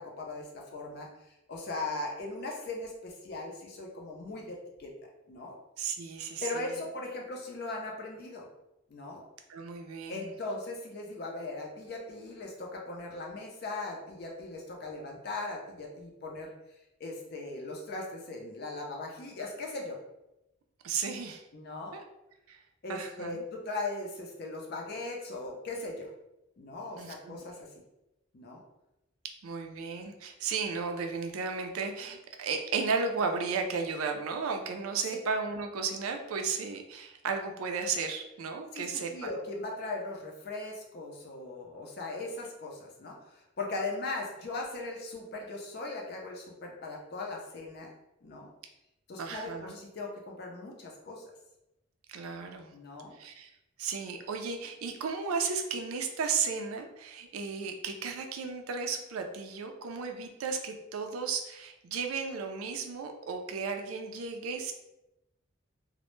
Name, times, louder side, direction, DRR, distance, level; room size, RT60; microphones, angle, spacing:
voice 1, 0.0-5.6 6.4-8.5 8.9-9.2 10.1-16.5 17.0-20.0 21.5-22.0 22.8-26.1 26.6-27.7 28.3-28.6 38.7-47.9 48.2-48.5 49.1-51.2 52.7-53.2, left 2 dB, 50° left, 0 dB, 0.5 m, -39 dB
voice 2, 5.8-6.7 9.5-10.3 20.8-21.4 21.9-22.0 22.5-22.6 22.9-23.4 27.0-27.4 29.4-39.3 49.2-49.8 52.1-52.7 53.2-53.5 53.8-64.7, right 5 dB, 90° right, 5 dB, 0.4 m, -34 dB
2.1 x 2.0 x 3.0 m, 0.91 s
head